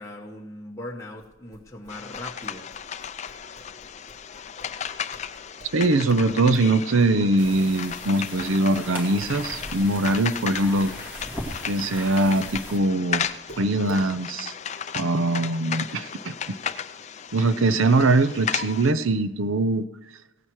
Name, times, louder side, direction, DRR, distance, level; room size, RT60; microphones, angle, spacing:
voice 1, 0.0-2.7, left 1 dB, 15° left, -2 dB, 1.1 m, -39 dB
sound 1, 1.2-6.7 7.0-12.7 13.1-14.1, right 1 dB, 50° right, 3.6 m, -48 dB
sound 2, 1.9-18.9, left 7 dB, 35° left, 0.4 m, -35 dB
voice 2, 5.7-10.9 11.7-13.3 13.6-14.5 14.9-16.6 17.3-19.9, right 2 dB, 85° right, 12 dB, 0.7 m, -22 dB
sound 3, 7.4-12.8, left 1 dB, 10° right, 2.3 m, -38 dB
16.5 x 9.0 x 4.7 m, 1.1 s
head